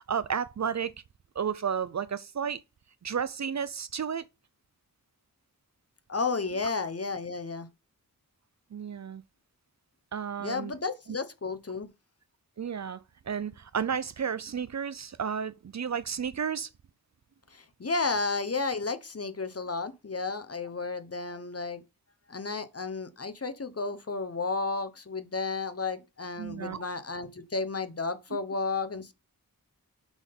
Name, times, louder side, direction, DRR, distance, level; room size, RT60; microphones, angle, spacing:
voice 1, 0.1-0.9 1.4-2.6 3.0-4.2 8.7-9.2 10.1-10.7 12.6-16.7 26.4-26.8, right 7 dB, 50° right, 0.5 m, -32 dB
voice 2, 6.1-7.7 10.4-11.9 17.5-21.8 22.3-29.1, left 4 dB, 45° left, 1.0 m, -32 dB
6.1 x 3.7 x 5.4 m
wide cardioid pair, 60°, 35 cm